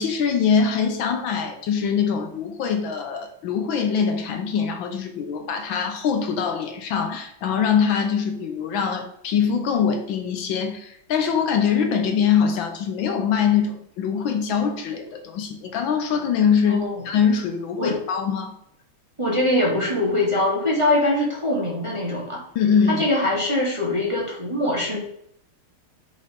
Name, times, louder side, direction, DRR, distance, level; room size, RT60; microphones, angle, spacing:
voice 1, 0.0-18.5 22.5-23.0, left 7 dB, 75° left, 6 dB, 1.4 m, -23 dB
voice 2, 19.2-22.4 22.9-25.0, left 1 dB, 15° right, -4 dB, 1.3 m, -23 dB
5.2 x 4.0 x 5.2 m, 0.72 s
omnidirectional pair, 2.3 m